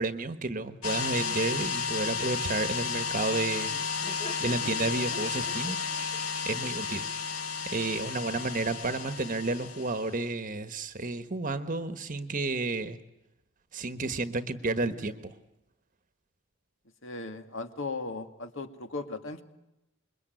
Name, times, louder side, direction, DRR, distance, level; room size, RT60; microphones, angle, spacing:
voice 1, 0.0-3.7 4.4-5.8 6.4-7.1 7.6-13.0 13.7-15.3, right 3 dB, 40° right, 10 dB, 1.3 m, -31 dB
sound 1, 0.8-10.2, left 5 dB, 75° left, 2.1 m, -33 dB
Laughter, 2.6-8.5, left 2 dB, 25° left, 1.9 m, -48 dB
voice 2, 17.0-19.4, left 3 dB, 60° left, 8 dB, 2.2 m, -37 dB
26.5 x 22.5 x 9.2 m, 0.92 s
head